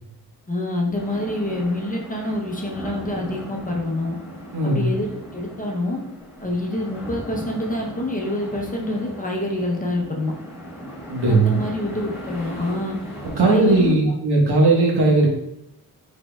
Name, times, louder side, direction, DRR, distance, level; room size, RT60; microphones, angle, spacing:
voice 1, 0.5-4.2 4.6-6.0 6.4-10.3 11.3-13.0 13.4-14.1, left 1 dB, 20° left, -1 dB, 0.8 m, -26 dB
sound 1, 0.9-13.9, equal, 5° right, 1.0 m, -37 dB
voice 2, 4.5-4.9 11.1-11.6 13.4-15.3, right 2 dB, 85° right, -2 dB, 1.3 m, -17 dB
5.0 x 4.4 x 2.3 m, 0.77 s
wide cardioid pair, 140°, 38 cm